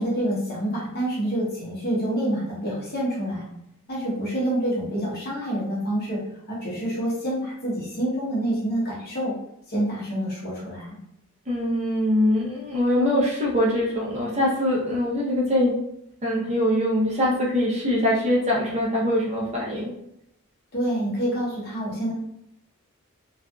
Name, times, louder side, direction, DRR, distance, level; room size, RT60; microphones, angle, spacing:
voice 1, 0.0-3.5 3.9-6.2 6.5-9.3 9.7-11.0 20.7-22.1, right 1 dB, 45° left, -6 dB, 0.9 m, -27 dB
voice 2, 11.5-15.7 16.2-19.9, left 1 dB, 30° right, -5 dB, 0.7 m, -23 dB
2.5 x 2.4 x 2.3 m, 0.78 s
head